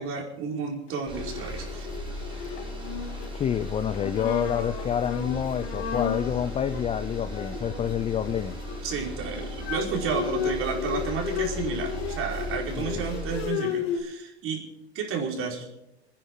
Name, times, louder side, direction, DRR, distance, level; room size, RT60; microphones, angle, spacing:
voice 1, 0.0-1.9 7.5-7.7 8.8-14.6 14.9-15.7, right 5 dB, 40° right, 4.8 m, -31 dB
Bowed string instrument, 1.0-14.0, left 8 dB, 65° left, 2.4 m, -34 dB
sound 1, 1.1-13.5, right 1 dB, 15° right, 4.2 m, -37 dB
voice 2, 3.3-8.6 12.7-13.1, left 9 dB, 20° left, 0.4 m, -28 dB
27.5 x 10.5 x 3.8 m
hypercardioid pair, 95°, 33 cm